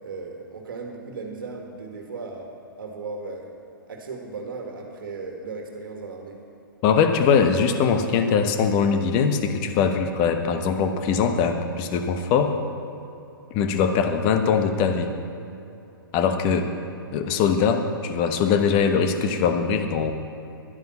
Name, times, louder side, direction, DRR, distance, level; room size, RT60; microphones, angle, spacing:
voice 1, 0.0-2.5 2.8-3.5 3.9-6.4, right 4 dB, 65° right, 2 dB, 1.7 m, -36 dB
voice 2, 6.8-12.5 13.5-15.1 16.1-16.7 17.1-20.1, left 6 dB, 35° left, 7 dB, 1.0 m, -21 dB
11.5 x 9.3 x 5.8 m, 2.8 s
figure-of-eight pair, 115°, 12 cm